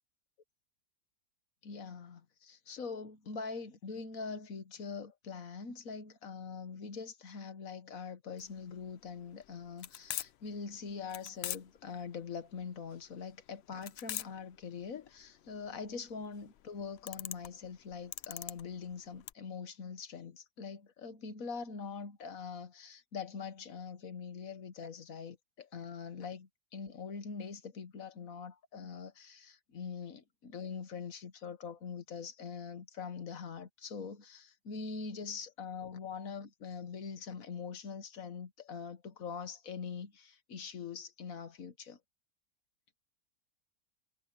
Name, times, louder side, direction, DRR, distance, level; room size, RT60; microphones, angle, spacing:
voice 1, 1.6-42.0, left 5 dB, 60° left, 1.6 m, -43 dB
sound 1, 8.4-19.3, left 12 dB, 80° left, 0.5 m, -44 dB
omnidirectional pair, 1.7 m